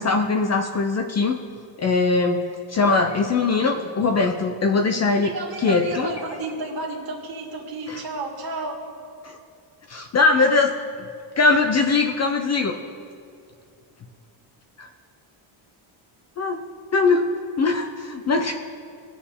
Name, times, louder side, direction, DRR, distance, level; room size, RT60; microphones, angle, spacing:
voice 1, 0.0-1.4 1.8-2.4 2.7-5.3 5.6-6.1 9.2-9.4 9.9-11.1 11.4-12.8 14.8-14.9 16.4-16.6 16.9-17.3 17.6-18.5, left 3 dB, 35° left, 4 dB, 0.5 m, -21 dB
voice 2, 3.4-3.9 5.2-8.8, right 3 dB, 45° right, 0 dB, 2.1 m, -32 dB
20.0 x 6.8 x 3.5 m, 2.4 s
cardioid pair, 170°, 50 cm